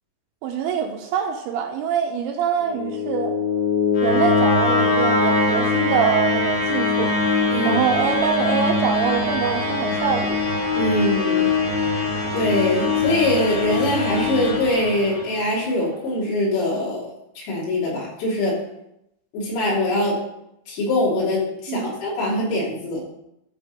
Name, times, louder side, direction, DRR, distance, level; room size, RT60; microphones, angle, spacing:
voice 1, 0.4-3.3 4.0-7.1 7.7-10.4 21.7-21.9, right 7 dB, 80° right, 3 dB, 2.8 m, -24 dB
sound 1, 2.6-15.6, left 3 dB, 60° left, 2.0 m, -22 dB
voice 2, 7.5-7.8 10.7-11.5 12.3-18.6 19.3-20.2 20.7-23.0, left 1 dB, 85° left, -5 dB, 5.7 m, -23 dB
13.5 x 4.5 x 5.2 m, 0.81 s
omnidirectional pair, 5.7 m